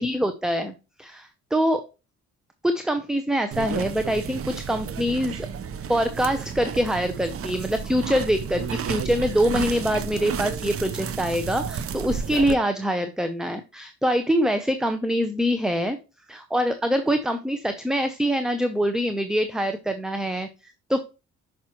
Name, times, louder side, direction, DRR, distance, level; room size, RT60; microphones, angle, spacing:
voice 1, 0.0-1.8 2.6-5.5 5.9-16.0 16.3-20.5 20.9-21.0, equal, ahead, 8 dB, 0.7 m, -24 dB
sound 1, 3.5-12.5, right 7 dB, 50° right, 0.8 m, -32 dB
6.0 x 6.0 x 3.0 m, 0.29 s
cardioid pair, 90°, 30 cm